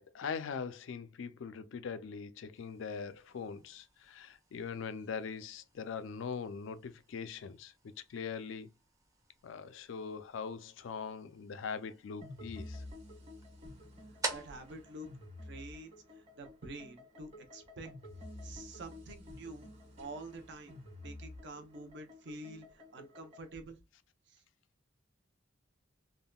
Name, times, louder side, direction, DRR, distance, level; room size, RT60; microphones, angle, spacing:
voice 1, 0.0-7.7 8.1-8.7 9.4-12.8, left 6 dB, 70° left, 0.4 m, -41 dB
sound 1, 2.5-16.2, right 3 dB, 15° right, 0.6 m, -49 dB
sound 2, 12.2-23.5, left 1 dB, 30° right, 1.4 m, -51 dB
voice 2, 14.3-15.1 15.4-17.9 18.4-19.7 20.0-20.7 21.0-23.8 24.3-24.4, right 2 dB, 60° right, 0.7 m, -48 dB
3.5 x 2.1 x 2.2 m
head